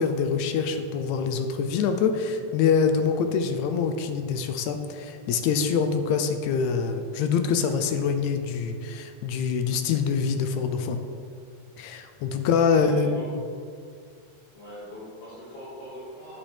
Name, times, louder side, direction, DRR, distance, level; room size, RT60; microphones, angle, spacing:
voice 1, 0.0-11.0 11.8-13.1, left 6 dB, 80° left, 7 dB, 1.8 m, -25 dB
voice 2, 12.4-13.3 14.5-16.4, left 3 dB, 55° left, -10 dB, 2.8 m, -40 dB
9.0 x 8.4 x 3.3 m, 2.2 s
omnidirectional pair, 3.4 m